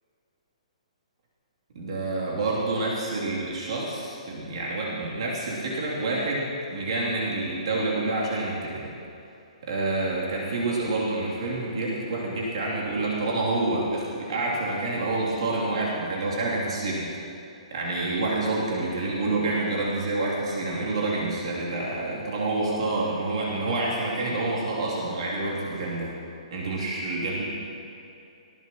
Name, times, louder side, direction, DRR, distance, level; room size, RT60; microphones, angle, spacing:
voice 1, 1.7-8.9 9.6-17.1 17.7-26.1 26.5-27.5, right 2 dB, 50° right, -5 dB, 3.0 m, -28 dB
19.5 x 16.5 x 3.0 m, 2.7 s
hypercardioid pair, 180°, 4 cm